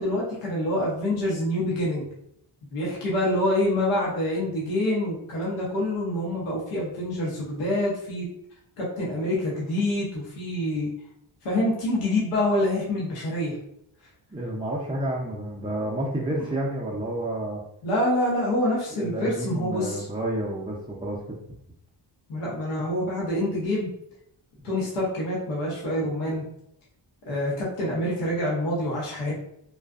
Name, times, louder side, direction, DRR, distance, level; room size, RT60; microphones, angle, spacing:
voice 1, 0.0-2.1 2.7-8.3 8.8-10.9 11.4-13.6 17.8-20.1 22.3-23.9 24.6-26.4 27.3-29.3, left 1 dB, 85° left, -6 dB, 0.9 m, -26 dB
voice 2, 14.3-17.6 18.9-21.2, right 1 dB, 10° right, -4 dB, 0.4 m, -30 dB
2.5 x 2.3 x 2.3 m, 0.75 s
cardioid pair, 70°, 49 cm